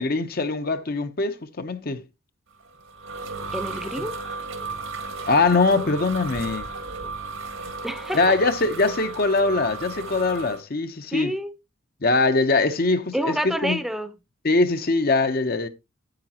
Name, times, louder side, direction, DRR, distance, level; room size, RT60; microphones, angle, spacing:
voice 1, 0.0-2.0 5.3-6.7 8.1-11.3 12.0-13.8 14.4-15.7, left 3 dB, 45° left, 0.7 m, -22 dB
sound 1, 2.6-10.6, right 3 dB, 80° right, 1.7 m, -34 dB
voice 2, 3.5-4.2 5.8-5.9 7.8-8.3 11.1-11.5 13.1-14.1, equal, ahead, 0.6 m, -28 dB
8.9 x 8.8 x 2.9 m
head